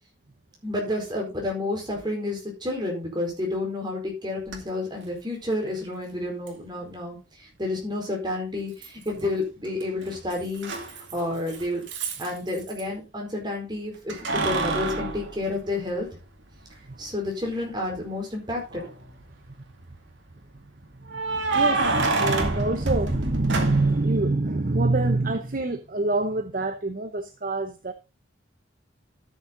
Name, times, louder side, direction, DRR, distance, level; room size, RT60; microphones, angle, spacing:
voice 1, 0.6-10.7 11.1-11.8 12.2-16.1 17.0-18.8, left 2 dB, 20° right, 4.5 m, -30 dB
Keys jangling, 4.5-4.6 6.5-6.6 8.8-9.4 9.6-12.8 14.1-16.2 16.7-16.8 18.6-19.1 21.1-24.1, right 3 dB, 70° right, 2.3 m, -28 dB
voice 2, 21.0-27.9, right 2 dB, 45° right, 0.8 m, -25 dB
13.0 x 7.2 x 3.9 m
head